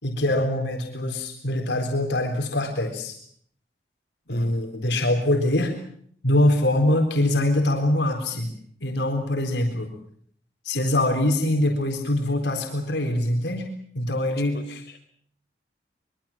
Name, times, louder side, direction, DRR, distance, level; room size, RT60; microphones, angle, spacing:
voice 1, 0.0-3.2 4.3-5.7 6.2-8.5 8.8-9.9 10.6-13.7 14.0-14.8, left 1 dB, 85° left, 2 dB, 4.1 m, -23 dB
voice 2, 14.5-15.0, left 2 dB, 60° left, 2 dB, 5.1 m, -42 dB
24.0 x 23.0 x 7.3 m, 0.63 s
head